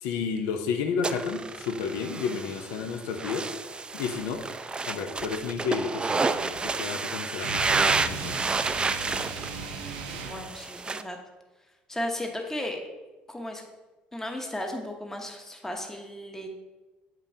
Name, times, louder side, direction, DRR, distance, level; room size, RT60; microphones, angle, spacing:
voice 1, 0.0-3.5 3.9-4.4 4.9-8.3, left 6 dB, 80° left, 6 dB, 0.5 m, -31 dB
sound 1, 1.0-11.0, right 4 dB, 20° right, 0.3 m, -30 dB
sound 2, 7.4-10.5, right 5 dB, 90° right, 0.6 m, -37 dB
voice 2, 10.2-11.2 11.9-12.8 13.3-13.6 14.1-16.5, left 1 dB, 10° left, 3 dB, 0.9 m, -35 dB
7.5 x 5.2 x 2.7 m, 1.2 s
hypercardioid pair, 70°, 4 cm